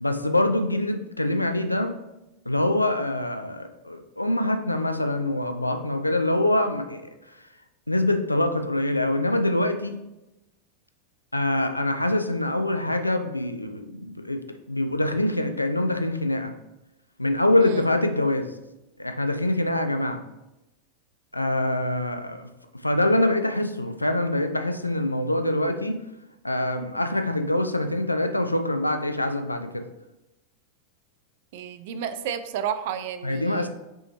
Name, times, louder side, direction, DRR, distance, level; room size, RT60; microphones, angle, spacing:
voice 1, 0.0-2.0 2.5-7.0 7.9-10.0 11.3-16.5 17.2-18.5 19.0-20.2 21.3-22.5 22.8-26.0 26.4-29.9 33.2-33.7, left 1 dB, 85° left, 7 dB, 0.4 m, -24 dB
voice 2, 31.5-33.7, right 8 dB, 50° right, 12 dB, 0.3 m, -32 dB
5.2 x 3.0 x 3.0 m, 0.96 s
figure-of-eight pair, 90°, 0 cm